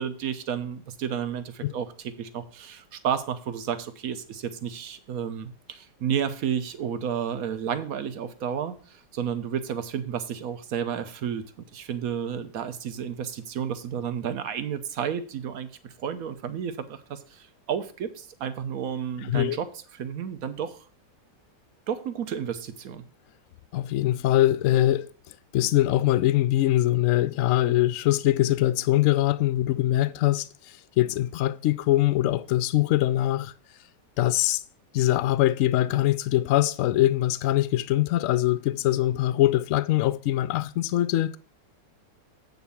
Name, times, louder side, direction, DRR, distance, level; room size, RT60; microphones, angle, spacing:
voice 1, 0.0-11.4 11.7-20.8 21.9-23.0, right 8 dB, 60° right, 1.2 m, -31 dB
voice 2, 19.2-19.6 23.7-25.1 25.5-33.5 34.2-34.6 34.9-41.4, left 14 dB, 75° left, 0.7 m, -23 dB
8.4 x 4.0 x 7.0 m
omnidirectional pair, 1.8 m